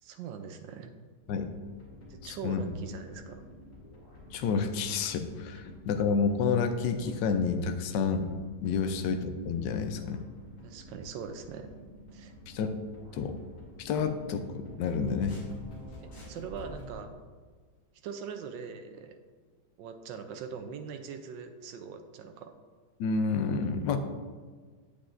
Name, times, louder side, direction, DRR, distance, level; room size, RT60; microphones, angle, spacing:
voice 1, 0.0-0.9 2.1-3.4 8.8-8.9 10.6-11.7 12.1-12.3 16.0-17.1 18.0-19.2 19.8-22.5, right 6 dB, 90° right, 6 dB, 1.3 m, -42 dB
sound 1, 1.2-16.9, left 1 dB, 60° left, 2.8 m, -49 dB
voice 2, 2.2-2.6 4.3-8.3 8.6-10.2 12.5-12.7 13.1-13.4 13.8-15.4 23.0-24.0, left 5 dB, 80° left, 7 dB, 1.2 m, -29 dB
8.4 x 7.4 x 2.5 m, 1.5 s
omnidirectional pair, 1.9 m